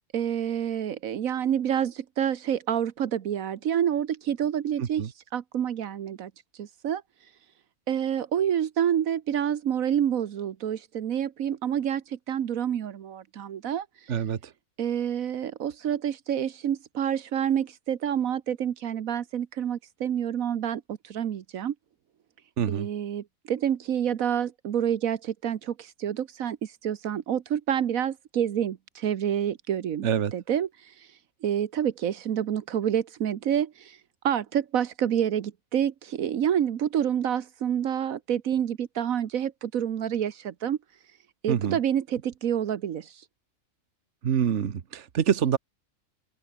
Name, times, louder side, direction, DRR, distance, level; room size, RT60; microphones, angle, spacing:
voice 1, 0.1-6.3 6.6-7.0 7.9-14.1 14.8-21.7 22.7-31.1 31.4-34.0 34.2-40.8 41.4-43.2, right 9 dB, 80° right, 1.4 m, -28 dB
voice 2, 14.1-14.5 22.6-22.9 30.0-30.3 41.5-41.8 44.2-45.6, right 8 dB, 60° right, 1.4 m, -26 dB
open air
omnidirectional pair, 1.4 m